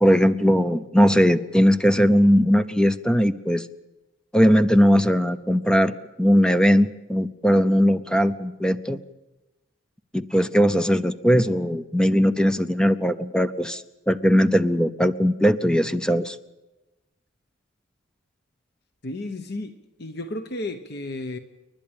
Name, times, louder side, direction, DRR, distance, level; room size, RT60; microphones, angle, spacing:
voice 1, 0.0-3.7 4.3-9.0 10.1-16.4, equal, 5° left, 0.6 m, -19 dB
voice 2, 19.0-21.4, left 2 dB, 55° left, 0.9 m, -33 dB
29.0 x 11.5 x 8.8 m
head